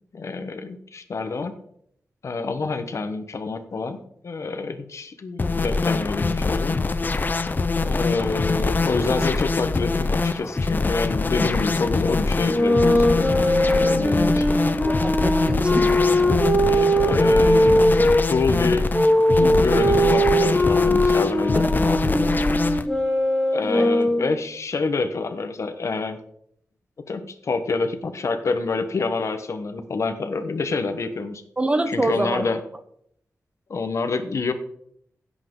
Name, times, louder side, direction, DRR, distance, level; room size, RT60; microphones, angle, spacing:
voice 1, 0.1-1.5 2.2-4.0 4.2-6.8 7.8-14.5 16.0-18.0 18.3-18.9 19.4-22.5 23.5-26.2 27.1-31.4 31.9-32.6 33.7-34.5, left 4 dB, 55° left, 1.1 m, -27 dB
sound 1, 5.4-22.8, left 3 dB, 35° left, 0.6 m, -24 dB
sound 2, 12.4-18.2 18.9-24.4, equal, 5° left, 3.5 m, -20 dB
voice 2, 14.9-15.9 21.5-21.7 23.7-23.9 31.6-32.4, right 2 dB, 20° right, 0.7 m, -25 dB
16.0 x 8.4 x 3.8 m
wide cardioid pair, 170°, 6 cm